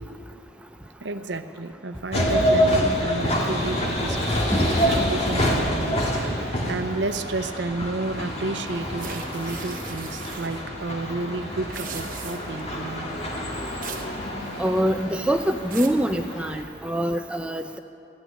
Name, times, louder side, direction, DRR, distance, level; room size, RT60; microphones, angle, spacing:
voice 1, 1.0-4.2 4.5-13.2, right 2 dB, 75° right, 9 dB, 0.7 m, -31 dB
sound 1, 2.1-16.6, equal, 35° left, 1.8 m, -27 dB
sound 2, 9.0-10.6 11.6-12.6 13.8-14.1 14.5-14.9 15.4-16.0, right 8 dB, 45° right, 1.1 m, -39 dB
voice 2, 14.6-17.8, equal, 5° right, 5 dB, 0.4 m, -25 dB
14.0 x 9.3 x 9.4 m, 2.6 s
head